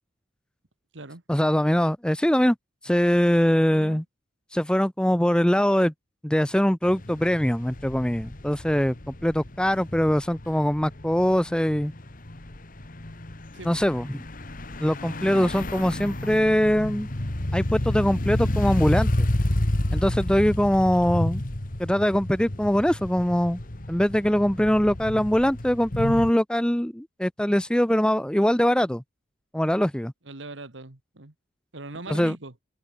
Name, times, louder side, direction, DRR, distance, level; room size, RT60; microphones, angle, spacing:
voice 1, 1.3-2.6 2.8-4.0 4.5-5.9 6.2-11.9 13.6-14.2 14.8-17.1 17.5-19.3 19.9-21.4 21.8-23.6 23.9-29.0 29.5-30.1 32.1-32.4, equal, 5° left, 0.7 m, -22 dB
voice 2, 3.7-4.0 13.5-13.8 30.3-31.3 31.7-32.5, right 2 dB, 70° right, 1.9 m, -40 dB
sound 1, 6.8-26.3, left 1 dB, 45° left, 1.7 m, -30 dB
head